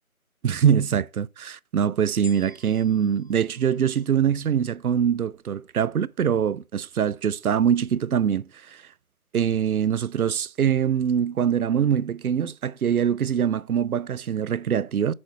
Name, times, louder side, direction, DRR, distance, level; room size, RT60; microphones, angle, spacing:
voice 1, 0.4-8.8 9.3-15.1, right 8 dB, 80° right, 0.5 m, -23 dB
sound 1, 2.2-4.6 5.3-5.4, left 4 dB, 60° left, 3.5 m, -48 dB
6.4 x 4.2 x 5.5 m
figure-of-eight pair, 170°, 43 cm